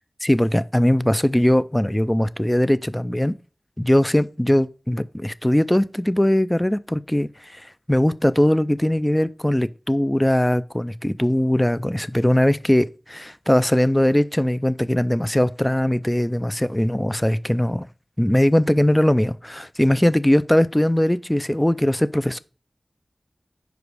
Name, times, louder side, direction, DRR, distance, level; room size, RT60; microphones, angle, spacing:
voice 1, 0.2-3.3 3.8-7.6 7.9-17.9 18.2-22.4, left 1 dB, 15° left, 0.4 m, -20 dB
5.2 x 5.0 x 4.7 m
wide cardioid pair, 60°, 0 cm